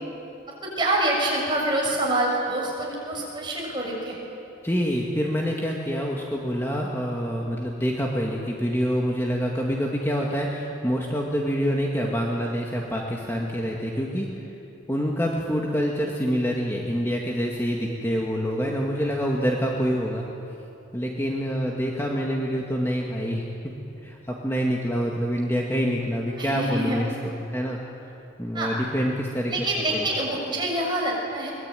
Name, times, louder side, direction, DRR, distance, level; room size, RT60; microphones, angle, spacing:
voice 1, 0.5-4.1 26.4-27.0 28.5-28.7 29.5-31.5, right 1 dB, 25° right, -2 dB, 6.6 m, -26 dB
voice 2, 4.6-14.3 14.9-20.3 20.9-23.4 24.0-27.1 27.5-27.8 28.4-29.7 29.9-30.1, equal, 15° left, -2 dB, 2.0 m, -26 dB
23.5 x 22.0 x 9.2 m, 2.8 s
head